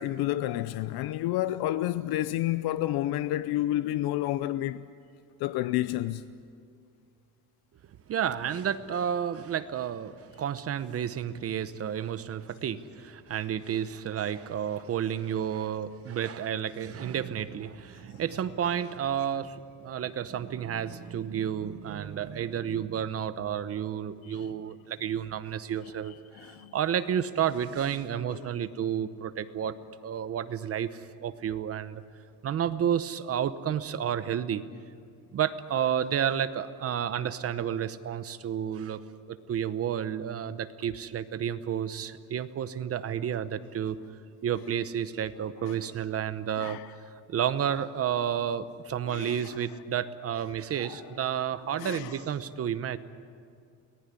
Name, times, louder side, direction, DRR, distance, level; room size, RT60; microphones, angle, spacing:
voice 1, 0.0-4.8 5.4-6.2 18.1-18.2 24.2-24.4 26.1-26.7 28.3-28.5 45.6-45.8 46.6-46.9 49.1-49.5 50.8-51.0 51.8-52.2, left 14 dB, 80° left, 0.7 m, -30 dB
voice 2, 8.1-29.8 30.0-32.0 32.4-34.6 35.3-39.0 39.3-44.0 44.4-46.8 47.3-53.0, right 9 dB, 40° right, 0.9 m, -31 dB
23.0 x 19.0 x 9.7 m
cardioid pair, 160°, 37 cm